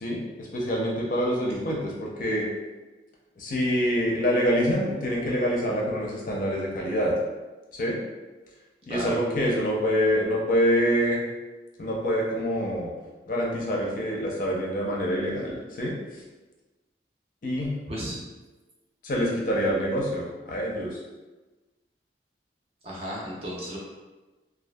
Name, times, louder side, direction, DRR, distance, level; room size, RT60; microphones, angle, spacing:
voice 1, 0.0-2.5 3.4-7.1 7.7-8.0 8.9-11.2 11.8-12.9 13.3-16.0 17.4-17.7 19.0-20.9, equal, 45° left, -3 dB, 0.5 m, -26 dB
voice 2, 17.6-18.3 22.8-23.8, equal, 35° right, -4 dB, 0.5 m, -34 dB
2.6 x 2.3 x 2.2 m, 1.2 s
head